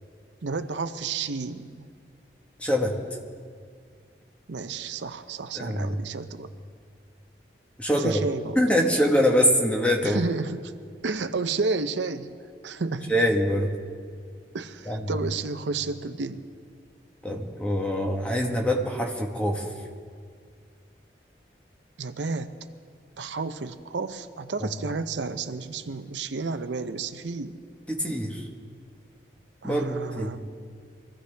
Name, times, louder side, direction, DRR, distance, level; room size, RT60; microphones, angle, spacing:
voice 1, 0.4-1.9 4.5-6.5 7.9-8.6 10.0-10.7 11.0-12.3 12.6-13.1 14.5-16.4 22.0-22.5 23.2-27.6 29.6-30.4, right 4 dB, 85° right, 10 dB, 0.7 m, -31 dB
voice 2, 2.6-3.0 5.5-6.0 7.8-8.2 8.6-10.2 13.1-13.7 14.9-15.1 17.2-19.7 24.6-24.7 27.9-28.4 29.6-30.4, equal, 5° left, 1 dB, 1.3 m, -24 dB
24.0 x 15.0 x 3.4 m, 2.1 s
head